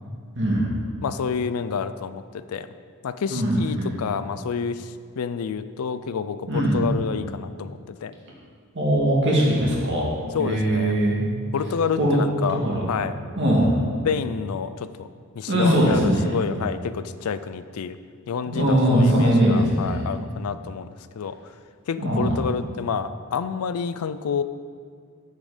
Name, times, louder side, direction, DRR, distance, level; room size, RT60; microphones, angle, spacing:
voice 1, 0.3-0.7 3.3-3.9 6.5-6.8 8.7-10.1 10.4-11.2 12.0-12.2 12.5-12.9 13.4-13.8 15.5-16.3 18.5-20.0 22.0-22.3, right 1 dB, 55° right, -4 dB, 2.0 m, -21 dB
voice 2, 1.0-2.7 3.0-8.1 10.3-11.0 11.5-12.6 12.9-13.2 14.0-15.1 15.4-18.0 18.3-20.9 21.1-21.4 21.9-24.4, left 6 dB, 75° left, 12 dB, 0.4 m, -28 dB
7.5 x 7.1 x 5.0 m, 2.2 s
head